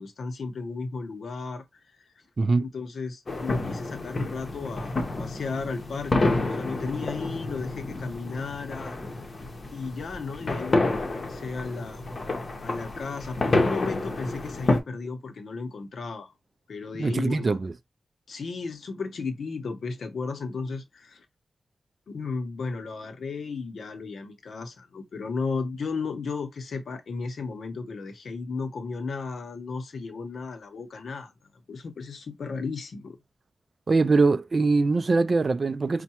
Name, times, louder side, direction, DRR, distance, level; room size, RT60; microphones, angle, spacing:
voice 1, 0.0-1.6 2.6-9.0 9.7-12.0 12.6-16.3 16.7-17.6 18.3-21.2 22.1-31.3 31.7-33.2, left 4 dB, 75° left, 0.8 m, -34 dB
sound 1, 3.3-14.8, left 2 dB, 40° left, 0.8 m, -29 dB
voice 2, 17.0-17.7 33.9-36.0, right 3 dB, 40° right, 0.3 m, -22 dB
5.4 x 2.2 x 2.9 m
wide cardioid pair, 145°, 0 cm